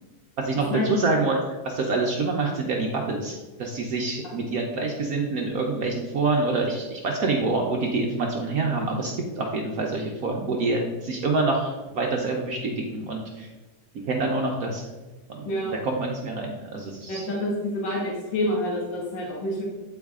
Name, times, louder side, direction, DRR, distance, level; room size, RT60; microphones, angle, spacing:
voice 1, 0.4-1.4 1.6-13.5 14.0-14.8 15.3-15.5 15.8-17.3, right 3 dB, 60° right, 0 dB, 1.0 m, -26 dB
voice 2, 15.5-15.8 17.1-19.6, left 1 dB, 75° left, -3 dB, 2.0 m, -28 dB
8.1 x 4.7 x 3.6 m, 1.2 s
omnidirectional pair, 2.0 m